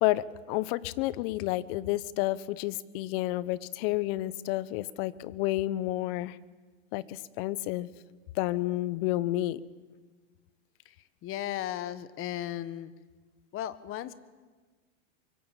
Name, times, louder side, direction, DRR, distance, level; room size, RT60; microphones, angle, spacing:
voice 1, 0.0-6.4 6.9-7.9 8.3-9.6, left 16 dB, 50° left, 18 dB, 1.1 m, -30 dB
voice 2, 11.2-12.9 13.5-14.1, left 12 dB, 35° left, 15 dB, 1.4 m, -35 dB
24.0 x 23.5 x 7.4 m, 1.4 s
hypercardioid pair, 115°, 35 cm